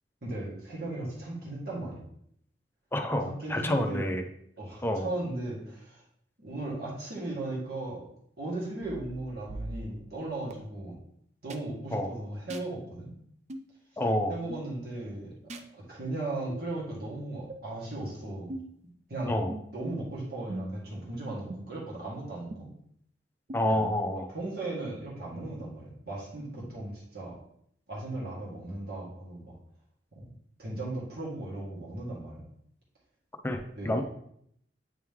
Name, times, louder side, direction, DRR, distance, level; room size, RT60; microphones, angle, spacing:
voice 1, 0.2-2.1 3.2-4.1 4.6-6.0 6.4-8.0 8.4-11.0 11.4-13.1 14.3-15.4 15.7-18.5 19.1-19.3 19.7-22.7 23.7-23.8 24.3-27.4 27.9-29.6 30.1-30.3 30.6-32.5 33.8-34.0, right 2 dB, 60° right, -5 dB, 1.9 m, -37 dB
voice 2, 2.9-4.2 4.8-5.1 11.9-12.1 14.0-14.3 19.3-19.5 23.5-24.3 33.4-34.0, left 1 dB, 15° left, 4 dB, 0.5 m, -28 dB
sound 1, 8.8-10.5 11.5-11.6 12.5-12.7 13.5-13.7 14.5-14.7 15.5-15.7 16.5-16.7 17.5-17.6 18.5-18.8 19.5-19.9 20.5-20.9 21.5-21.6 22.5-22.6 23.5-23.6, right 1 dB, 40° right, 0.5 m, -41 dB
8.6 x 3.1 x 3.6 m, 0.68 s
head